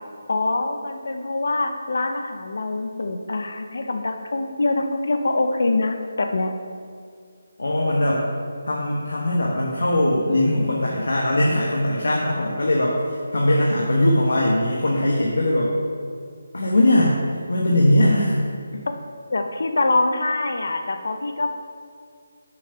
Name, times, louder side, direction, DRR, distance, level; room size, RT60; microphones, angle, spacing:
voice 1, 0.3-6.5 19.3-21.5, left 2 dB, 50° left, 6 dB, 0.7 m, -24 dB
voice 2, 7.6-8.3 8.7-15.7 16.5-18.4, left 1 dB, 80° left, -3 dB, 1.2 m, -20 dB
6.9 x 5.2 x 5.7 m, 2.2 s
hypercardioid pair, 180°, 0 cm